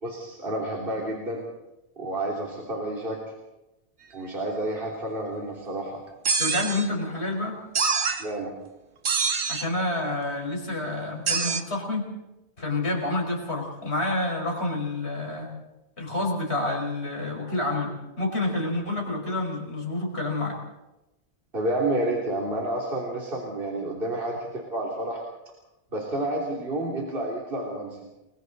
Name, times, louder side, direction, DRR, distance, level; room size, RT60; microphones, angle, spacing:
voice 1, 0.0-1.5 2.0-3.2 4.1-6.0 8.2-8.5 21.5-25.2 25.9-27.9, right 1 dB, 55° right, -2 dB, 3.4 m, -30 dB
sound 1, 6.2-6.9 7.7-8.2 9.0-9.7 11.3-11.6, right 5 dB, 80° right, 1.6 m, -25 dB
voice 2, 6.4-7.6 9.5-12.1 12.6-15.6 16.0-20.6, left 2 dB, 70° left, 0 dB, 5.5 m, -28 dB
30.0 x 22.0 x 4.1 m, 0.96 s
omnidirectional pair, 1.1 m